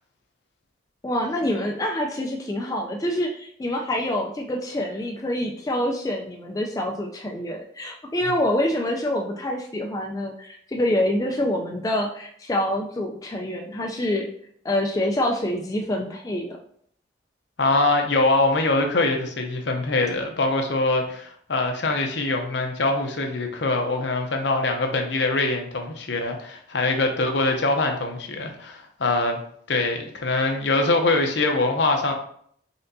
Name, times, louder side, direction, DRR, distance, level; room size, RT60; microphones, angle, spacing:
voice 1, 1.0-14.3 14.6-16.6, left 1 dB, 20° left, 0 dB, 0.3 m, -26 dB
voice 2, 17.6-29.4 29.7-32.1, left 2 dB, 65° left, 3 dB, 0.7 m, -23 dB
4.3 x 3.8 x 2.7 m, 0.62 s
head